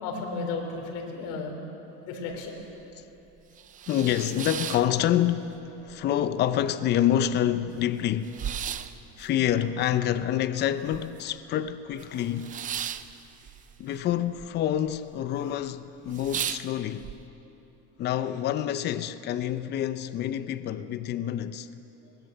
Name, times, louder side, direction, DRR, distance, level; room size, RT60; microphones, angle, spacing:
voice 1, 0.0-1.6 2.0-2.6, left 4 dB, 75° left, 4.1 m, -33 dB
sound 1, 2.3-2.4 2.8-2.9 3.4-5.6 5.9-6.6 7.0-7.1 7.2-11.4 11.7-14.5 14.7-15.3 15.7-15.8 16.1-17.1, right 9 dB, 25° right, 0.5 m, -36 dB
voice 2, 3.9-8.4 9.2-12.6 13.8-17.1 18.0-21.7, left 11 dB, 35° left, 0.7 m, -27 dB
21.5 x 19.0 x 7.9 m
cardioid pair, 165°, 29 cm